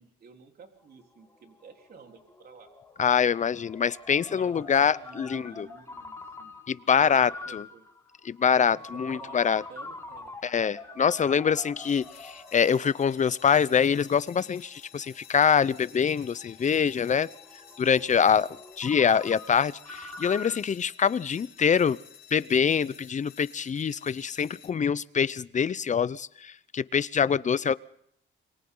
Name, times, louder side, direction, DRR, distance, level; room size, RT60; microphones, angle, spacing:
voice 1, 0.0-2.7 4.3-6.5 6.9-7.8 8.5-9.4 9.7-10.3, right 5 dB, 50° right, 2 dB, 4.0 m, -51 dB
Ringtone, 0.8-20.6, left 2 dB, 15° left, 4.9 m, -45 dB
voice 2, 3.0-5.7 6.7-7.6 8.2-9.6 10.4-17.3 17.8-18.5 18.8-22.0 22.3-27.8, left 7 dB, 40° left, 18 dB, 0.8 m, -25 dB
sound 1, 11.8-24.7, left 8 dB, 55° left, 2.6 m, -52 dB
29.0 x 23.0 x 4.0 m, 0.71 s
cardioid pair, 90°, 20 cm